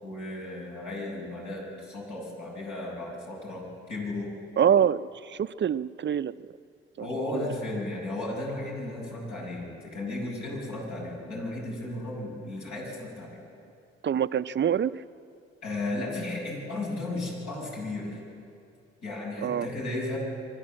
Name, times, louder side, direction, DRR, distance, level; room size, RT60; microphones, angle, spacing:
voice 1, 0.0-4.3 7.0-13.4 15.6-18.2 19.0-20.2, left 2 dB, 70° left, -3 dB, 7.1 m, -34 dB
voice 2, 4.6-6.5 7.0-7.1 7.3-7.4 14.0-14.9 19.4-19.7, right 9 dB, 40° right, 14 dB, 0.6 m, -25 dB
24.5 x 13.5 x 7.7 m, 2.5 s
hypercardioid pair, 55°, 30 cm